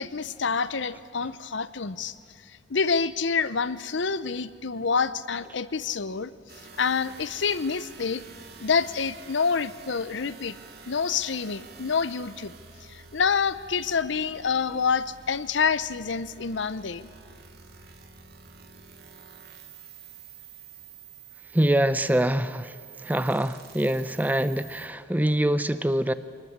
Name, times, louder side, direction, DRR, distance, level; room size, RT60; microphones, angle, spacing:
voice 1, 0.0-2.1 2.7-6.3 6.8-8.2 8.6-10.6 10.9-12.5 12.9-17.1, left 5 dB, 65° left, 15 dB, 0.7 m, -27 dB
sound 1, 6.5-24.9, right 6 dB, 55° right, 2.1 m, -49 dB
voice 2, 21.5-26.1, right 1 dB, 10° right, 13 dB, 0.5 m, -24 dB
23.5 x 20.0 x 8.0 m, 2.2 s
head